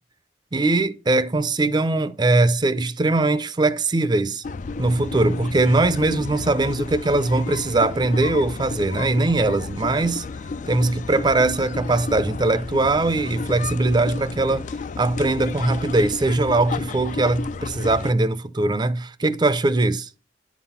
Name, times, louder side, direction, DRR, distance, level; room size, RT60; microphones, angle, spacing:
voice 1, 0.5-4.4 4.8-10.2 10.7-14.7 15.0-20.1, right 2 dB, 25° right, 0.5 m, -21 dB
sound 1, 4.4-18.1, left 4 dB, 45° left, 0.3 m, -32 dB
10.5 x 4.0 x 5.6 m
head